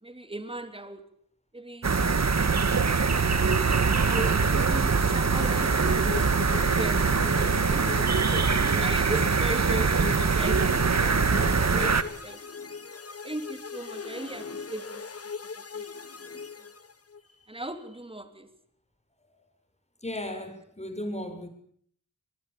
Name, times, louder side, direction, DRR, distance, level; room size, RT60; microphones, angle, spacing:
voice 1, 0.0-1.1 1.5-1.9 4.0-6.4 6.7-11.4 11.7-12.4 13.2-15.0 15.5-15.9 16.3-16.4 17.5-18.5, right 1 dB, 15° right, 3.4 m, -38 dB
sound 1, 1.8-12.0, right 5 dB, 55° right, 1.8 m, -23 dB
sound 2, 5.4-17.2, left 5 dB, 45° left, 1.4 m, -39 dB
voice 2, 20.0-21.5, left 1 dB, 20° left, 7.2 m, -36 dB
23.0 x 22.0 x 8.7 m
wide cardioid pair, 70°, 32 cm